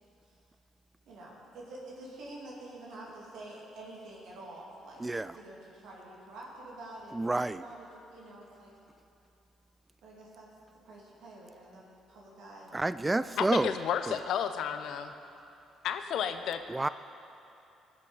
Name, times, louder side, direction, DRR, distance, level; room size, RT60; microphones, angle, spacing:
voice 1, 1.1-8.7 10.0-10.5 10.8-12.7, right 2 dB, 65° right, -4 dB, 2.5 m, -48 dB
voice 2, 7.2-7.6 12.7-13.7 16.7-16.9, right 2 dB, 20° right, 14 dB, 0.3 m, -29 dB
voice 3, 13.4-15.1 15.8-16.6, left 8 dB, 65° left, 9 dB, 0.7 m, -32 dB
19.0 x 6.5 x 5.5 m, 2.8 s
hypercardioid pair, 50°, 0 cm